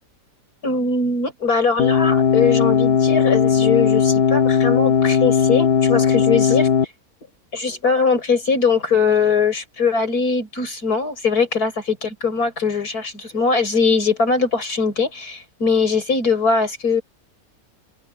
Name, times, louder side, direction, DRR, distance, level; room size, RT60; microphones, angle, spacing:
voice 1, 0.6-6.7 7.5-17.0, left 5 dB, 85° left, 6.0 m, -21 dB
sound 1, 1.8-6.8, left 7 dB, 50° left, 1.0 m, -17 dB
open air
omnidirectional pair, 1.6 m